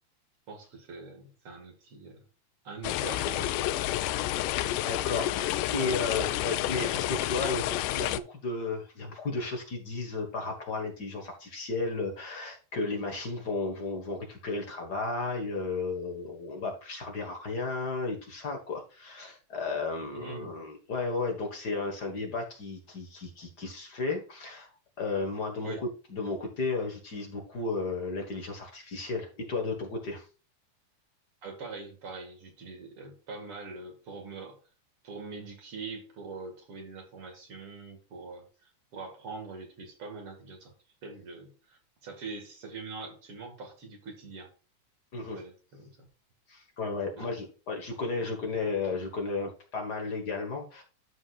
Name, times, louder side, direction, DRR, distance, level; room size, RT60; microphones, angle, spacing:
voice 1, 0.5-2.2 2.6-3.6 5.8-6.0 20.1-20.6 25.6-25.8 31.4-34.6 35.0-40.7 41.0-44.5 45.3-46.1 47.1-47.3, right 4 dB, 50° right, 4 dB, 2.6 m, -43 dB
sound 1, 2.8-8.2, left 14 dB, 85° left, 2.1 m, -30 dB
voice 2, 4.8-24.7 25.0-30.2 45.1-45.4 46.5-50.8, left 3 dB, 40° left, 2 dB, 1.6 m, -34 dB
13.0 x 5.3 x 2.4 m, 0.35 s
omnidirectional pair, 3.6 m